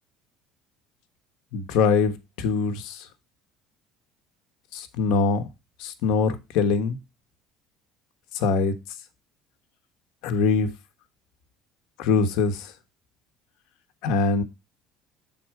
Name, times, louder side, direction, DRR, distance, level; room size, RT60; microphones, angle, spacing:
voice 1, 1.5-3.1 4.7-5.4 5.8-7.0 8.3-8.7 10.2-10.7 12.0-12.7 14.0-14.4, left 4 dB, 75° left, 1.0 m, -23 dB
7.5 x 4.0 x 4.6 m
cardioid pair, 160°, 0 cm